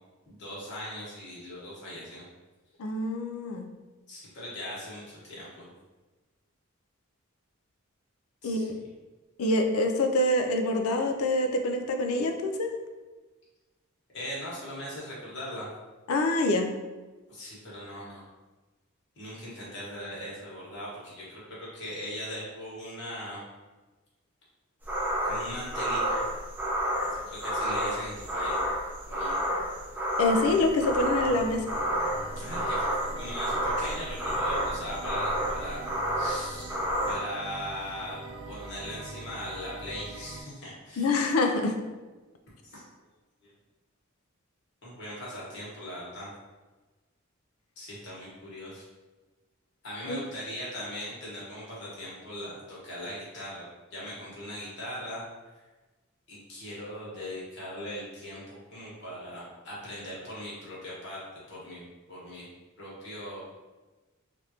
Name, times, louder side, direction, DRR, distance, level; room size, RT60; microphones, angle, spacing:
voice 1, 0.3-2.2 4.1-5.7 8.4-8.7 14.1-15.7 17.3-18.2 19.2-23.4 25.2-26.2 27.1-28.6 29.1-29.3 32.4-35.8 36.1-36.7 37.1-38.2 38.4-41.1 42.6-42.8 43.4-43.5 44.8-46.3 47.8-48.8 49.8-55.2 56.3-62.5 62.8-63.6, equal, 55° left, -7 dB, 1.3 m, -39 dB
voice 2, 2.8-3.7 8.4-8.7 9.4-12.7 16.1-16.7 30.2-31.6 41.0-41.7 50.1-50.2, left 2 dB, 85° left, 4 dB, 0.4 m, -26 dB
sound 1, 24.9-37.2, equal, 10° right, 0.4 m, -30 dB
sound 2, 30.4-40.4, right 3 dB, 75° right, 0.4 m, -43 dB
3.3 x 2.5 x 2.8 m, 1.2 s
head